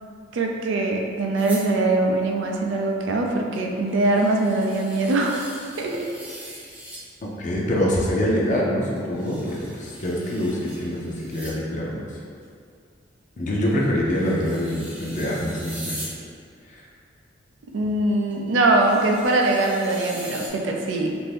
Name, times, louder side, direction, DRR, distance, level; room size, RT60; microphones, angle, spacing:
voice 1, 0.3-5.4 5.8-6.1 17.7-21.2, right 2 dB, 90° right, 1 dB, 0.4 m, -22 dB
sound 1, 1.4-1.7 3.5-3.6 3.9-7.1 9.0-11.6 12.4-12.5 14.1-16.2 18.3-18.4 18.7-20.5, right 1 dB, 10° right, 0.4 m, -41 dB
voice 2, 7.4-12.0 13.4-16.0 16.7-16.8, equal, 40° left, -3 dB, 0.5 m, -25 dB
2.6 x 2.6 x 3.3 m, 2.3 s
head